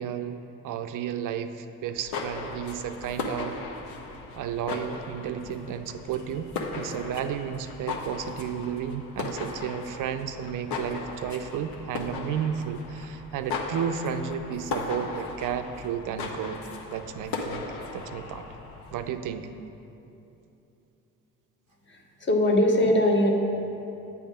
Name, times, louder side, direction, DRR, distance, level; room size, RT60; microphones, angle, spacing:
voice 1, 0.0-3.6 4.3-16.6 16.9-17.7 17.9-18.4 18.9-19.5, right 8 dB, 50° right, 9 dB, 0.5 m, -32 dB
sound 1, 1.9-19.2, left 4 dB, 60° left, 0.9 m, -37 dB
voice 2, 21.9-23.3, left 1 dB, 25° left, 1 dB, 1.1 m, -22 dB
8.3 x 3.4 x 6.0 m, 2.9 s
hypercardioid pair, 50°, 41 cm